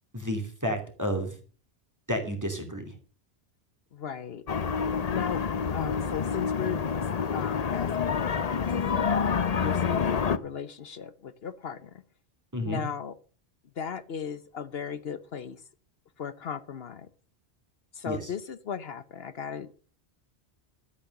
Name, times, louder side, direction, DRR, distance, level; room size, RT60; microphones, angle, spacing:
voice 1, 0.1-1.3 2.1-2.8 12.5-12.8 18.1-18.3, equal, 15° right, 5 dB, 2.7 m, -31 dB
voice 2, 3.9-4.4 4.8-6.8 7.3-9.2 9.6-11.9 12.6-13.1 13.8-15.6 16.2-17.1 17.9-19.7, left 7 dB, 65° left, 14 dB, 1.1 m, -37 dB
sound 1, 4.5-10.4, left 6 dB, 40° left, 0.7 m, -28 dB
12.5 x 8.8 x 6.6 m, 0.39 s
omnidirectional pair, 1.1 m